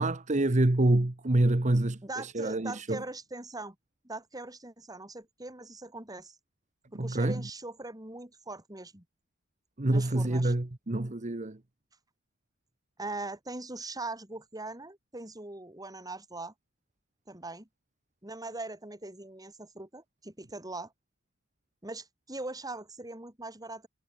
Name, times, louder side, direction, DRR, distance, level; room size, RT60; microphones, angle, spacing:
voice 1, 0.0-3.0 6.9-7.5 9.8-11.6, right 1 dB, 35° right, 1.1 m, -27 dB
voice 2, 2.0-3.8 4.0-6.4 6.9-9.0 9.9-10.5 13.0-16.5 17.3-17.7 18.2-20.9 21.8-23.9, right 2 dB, 20° right, 4.1 m, -41 dB
head